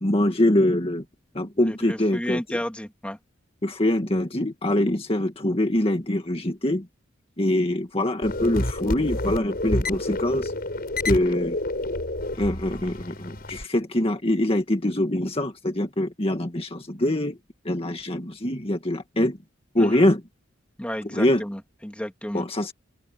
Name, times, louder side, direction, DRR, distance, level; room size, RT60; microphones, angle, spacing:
voice 1, 0.0-1.0 1.3-2.6 3.6-6.9 7.4-10.5 11.1-11.6 12.3-17.4 17.7-19.4 19.7-20.2 21.1-21.4 22.3-22.7, left 1 dB, 30° left, 1.9 m, -24 dB
voice 2, 1.6-3.2 19.8-20.1 20.8-22.4, equal, 5° left, 2.6 m, -32 dB
sound 1, 8.2-13.6, left 1 dB, 50° left, 5.8 m, -29 dB
open air
head